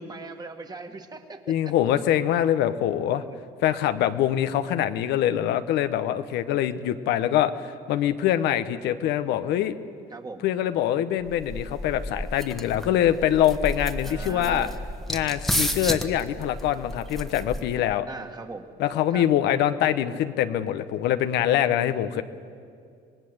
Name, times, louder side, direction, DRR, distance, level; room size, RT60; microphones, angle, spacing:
voice 1, 0.0-1.7 3.1-3.4 10.1-10.5 14.0-14.8 18.1-18.7 19.1-19.3 22.0-22.2, right 3 dB, 25° right, 6 dB, 1.9 m, -39 dB
voice 2, 1.5-3.2 3.6-9.8 10.4-14.7 15.1-18.1 18.8-22.2, left 11 dB, 85° left, 10 dB, 1.0 m, -24 dB
sound 1, 11.3-17.9, equal, ahead, 1.3 m, -32 dB
26.0 x 19.0 x 8.0 m, 2.3 s
cardioid pair, 110°, 17 cm